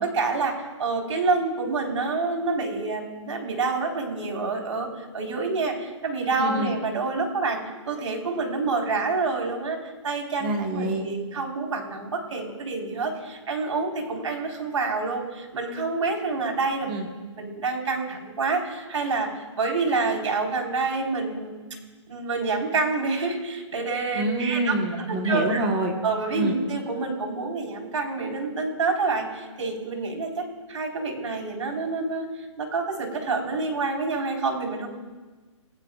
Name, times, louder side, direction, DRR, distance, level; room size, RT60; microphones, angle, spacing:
voice 1, 0.0-7.6 7.9-16.9 17.4-21.6 22.1-24.7 25.1-25.6 26.0-34.9, right 3 dB, 70° right, 1 dB, 4.2 m, -27 dB
voice 2, 6.4-6.7 10.4-11.0 16.9-17.1 24.1-25.9 26.3-26.5, right 1 dB, 15° right, 3 dB, 1.2 m, -26 dB
29.0 x 16.0 x 2.4 m, 1.3 s
hypercardioid pair, 180°, 16 cm